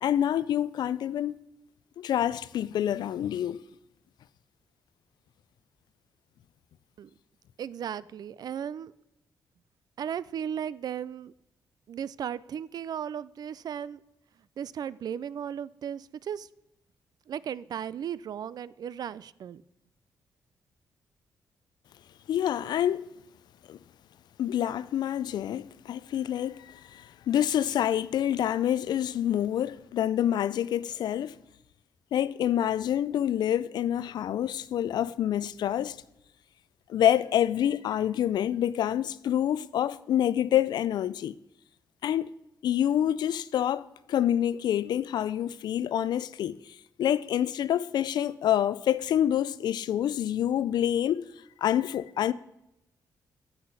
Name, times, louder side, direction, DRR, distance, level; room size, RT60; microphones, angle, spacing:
voice 1, 0.0-1.3 2.0-3.6 22.3-23.0 23.7-23.8 24.4-31.4 32.1-36.0 36.9-41.3 42.0-42.3 42.6-43.8 44.1-46.6 47.0-51.2 51.6-52.3, left 10 dB, 75° left, 0.4 m, -27 dB
voice 2, 7.6-8.9 10.0-11.3 11.9-14.0 14.6-16.5 17.3-19.6, right 9 dB, 65° right, 0.4 m, -36 dB
8.0 x 6.3 x 5.5 m
cardioid pair, 70°, 7 cm